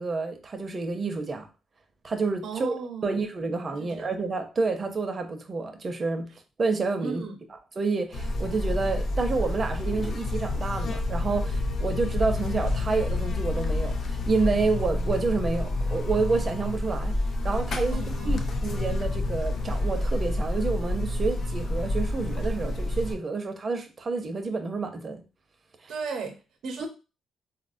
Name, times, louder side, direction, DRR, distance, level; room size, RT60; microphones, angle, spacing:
voice 1, 0.0-1.5 2.0-2.7 3.0-6.3 6.6-7.2 7.8-17.2 17.4-25.2 25.8-25.9 26.8-26.9, right 4 dB, 30° right, 0.4 m, -29 dB
voice 2, 2.4-3.3 3.8-4.1 7.0-7.4 17.9-18.5 25.9-26.9, right 4 dB, 70° right, 0.6 m, -36 dB
Buzz, 8.1-23.1, left 2 dB, 45° left, 0.4 m, -28 dB
3.9 x 2.1 x 2.5 m
cardioid pair, 165°, 0 cm